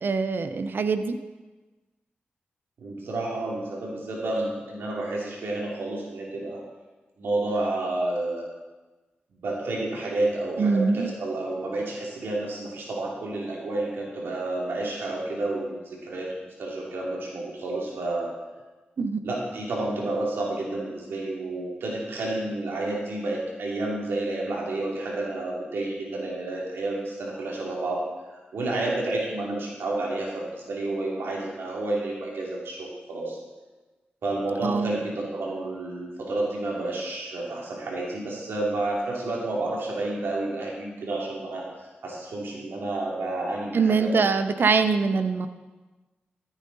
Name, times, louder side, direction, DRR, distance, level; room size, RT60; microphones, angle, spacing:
voice 1, 0.0-1.1 10.6-11.1 19.0-19.2 34.6-35.0 43.7-45.5, right 4 dB, 65° right, 10 dB, 0.8 m, -23 dB
voice 2, 2.8-6.6 7.2-8.4 9.4-16.3 16.6-18.3 19.2-28.0 28.5-33.4 34.2-41.7 42.0-44.1, right 2 dB, 85° right, -3 dB, 2.8 m, -30 dB
14.0 x 9.1 x 4.1 m, 1.2 s
cardioid pair, 50°, 4 cm